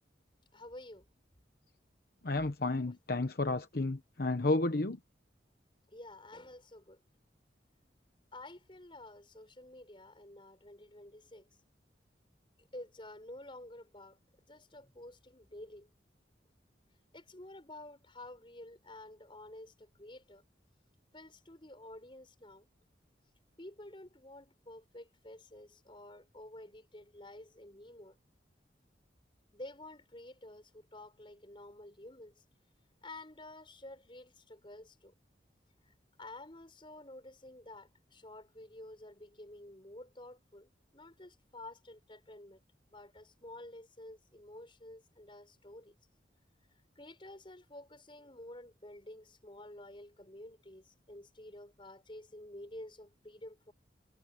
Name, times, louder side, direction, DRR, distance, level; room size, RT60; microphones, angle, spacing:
voice 1, 0.5-1.1 5.9-7.0 8.3-11.5 12.7-15.9 17.1-20.4 21.1-22.7 23.6-28.2 29.5-32.3 33.0-35.1 36.2-42.6 42.9-46.0 47.0-53.7, left 1 dB, 30° left, 5.3 m, -51 dB
voice 2, 2.2-5.0, left 2 dB, 55° left, 1.0 m, -31 dB
head